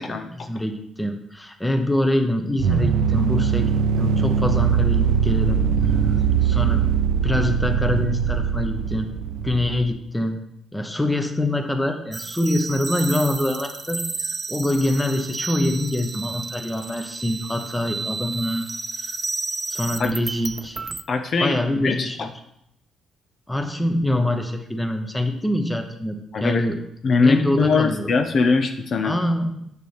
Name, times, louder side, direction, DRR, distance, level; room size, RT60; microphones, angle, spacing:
voice 1, 0.0-3.7 4.0-6.9 7.2-9.1 9.4-18.7 19.0-19.2 19.7-20.8 21.4-22.3 23.5-26.8 27.2-28.1 29.0-29.7, left 1 dB, 10° left, 6 dB, 0.8 m, -25 dB
sound 1, 2.6-9.8, right 7 dB, 85° right, 0.5 m, -21 dB
sound 2, 12.1-21.0, right 4 dB, 25° right, 0.4 m, -32 dB
voice 2, 21.1-22.3 26.3-26.7 27.0-29.1, left 4 dB, 55° left, 6 dB, 0.6 m, -21 dB
6.6 x 6.5 x 3.4 m, 0.76 s
cardioid pair, 90°, 0 cm